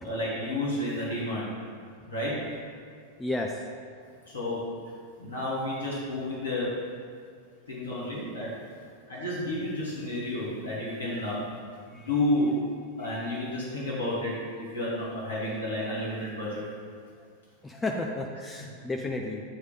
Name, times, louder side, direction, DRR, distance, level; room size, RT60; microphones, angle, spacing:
voice 1, 0.0-1.5 2.1-2.4 4.2-4.6 5.2-6.7 7.7-8.6 9.1-11.4 11.9-12.6 13.0-16.6, left 1 dB, 70° left, -6 dB, 1.4 m, -31 dB
voice 2, 3.2-3.6 11.9-12.1 13.1-13.5 17.6-19.4, left 2 dB, 10° left, 1 dB, 0.4 m, -33 dB
8.0 x 3.2 x 5.2 m, 2.1 s
figure-of-eight pair, 90°, 0 cm